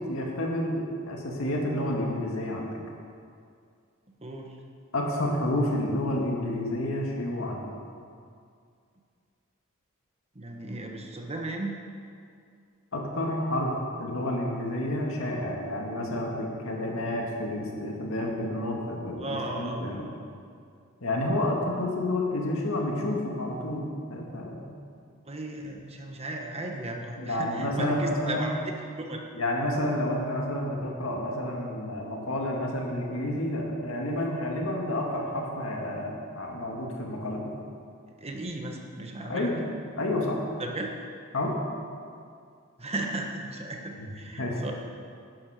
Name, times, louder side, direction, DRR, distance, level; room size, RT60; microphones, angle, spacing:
voice 1, 0.0-2.8 4.9-7.8 12.9-13.7 14.0-20.1 21.0-24.7 27.2-28.5 29.4-37.5 39.3-39.7 40.0-40.4 41.3-41.6 44.0-44.1 44.4-44.6, left 1 dB, 75° left, -1 dB, 2.1 m, -30 dB
voice 2, 4.2-4.6 10.3-11.8 19.2-19.8 25.2-29.2 38.2-39.5 40.6-40.9 42.8-44.7, right 2 dB, 30° right, 1 dB, 1.3 m, -35 dB
12.5 x 10.5 x 5.1 m, 2.3 s
head